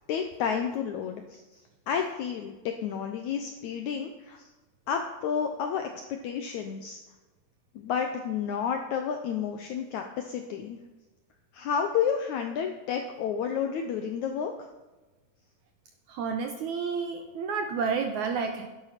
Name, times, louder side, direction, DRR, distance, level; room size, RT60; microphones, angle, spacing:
voice 1, 0.1-1.4 1.9-4.5 4.9-7.0 7.8-10.8 11.5-14.5, left 7 dB, 75° left, 5 dB, 1.7 m, -31 dB
voice 2, 16.1-18.7, right 5 dB, 75° right, 5 dB, 1.8 m, -30 dB
12.0 x 11.0 x 5.9 m, 1.2 s
omnidirectional pair, 4.3 m